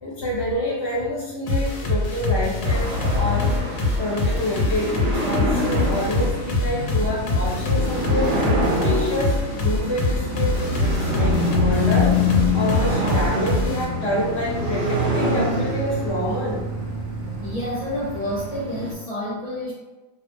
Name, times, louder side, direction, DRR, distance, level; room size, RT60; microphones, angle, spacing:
voice 1, 0.0-3.5 4.0-8.4 8.8-12.2 12.5-16.6, left 1 dB, 60° left, -5 dB, 0.8 m, -27 dB
sound 1, 1.5-13.8, left 2 dB, 80° left, 1.0 m, -24 dB
sound 2, 2.6-18.9, left 1 dB, 65° right, 0.8 m, -26 dB
sound 3, 2.8-18.6, equal, 10° right, 0.9 m, -42 dB
voice 2, 17.4-19.7, left 1 dB, 50° right, -9 dB, 0.4 m, -29 dB
2.4 x 2.1 x 2.4 m, 1.1 s
omnidirectional pair, 1.4 m